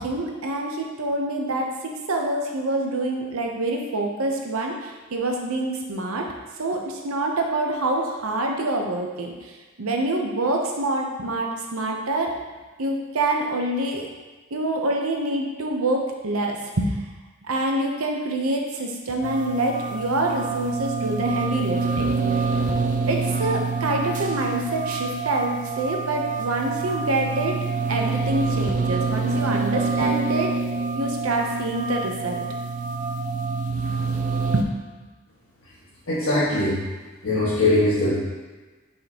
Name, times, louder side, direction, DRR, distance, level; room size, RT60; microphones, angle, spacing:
voice 1, 0.0-6.3 6.6-9.5 9.8-12.3 12.8-14.1 14.5-17.0 17.4-22.1 23.1-27.6 27.9-30.5 31.0-32.4 33.7-34.7, right 2 dB, 80° right, 1 dB, 0.8 m, -26 dB
sound 1, 19.2-34.6, right 4 dB, 40° right, 0.5 m, -26 dB
voice 2, 36.1-36.8 37.2-38.1, left 2 dB, 75° left, -11 dB, 1.6 m, -21 dB
6.4 x 5.2 x 2.9 m, 1.3 s
head